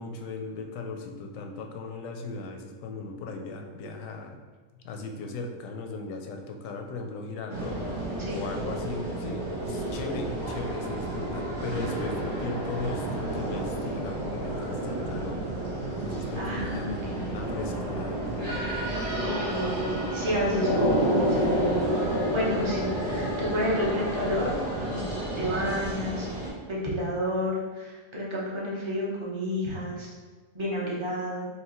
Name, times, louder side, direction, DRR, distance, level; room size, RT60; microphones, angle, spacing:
voice 1, 0.0-4.4 4.8-7.8 8.3-15.4 16.0-18.6, left 3 dB, 70° left, 3 dB, 0.8 m, -37 dB
sound 1, 7.5-26.5, right 1 dB, 80° right, 2.0 m, -30 dB
voice 2, 16.4-17.4 19.2-21.9 22.3-25.1 25.4-26.3 26.7-30.1 30.5-31.5, left 1 dB, 25° right, -5 dB, 0.8 m, -31 dB
4.7 x 2.9 x 3.0 m, 1.4 s
omnidirectional pair, 1.7 m